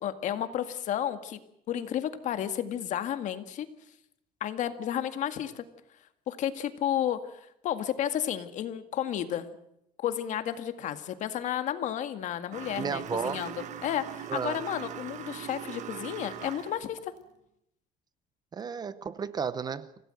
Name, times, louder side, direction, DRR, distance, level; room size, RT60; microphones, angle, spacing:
voice 1, 0.0-1.4 1.7-3.7 4.4-5.6 6.3-9.5 10.0-13.5 13.8-17.1, left 10 dB, 50° left, 1.9 m, -32 dB
sound 1, 12.5-16.9, right 10 dB, 50° right, 1.5 m, -41 dB
voice 2, 12.8-13.4 14.3-14.6 18.5-19.9, right 6 dB, 25° right, 0.8 m, -33 dB
26.5 x 17.5 x 7.8 m
cardioid pair, 160°, 16 cm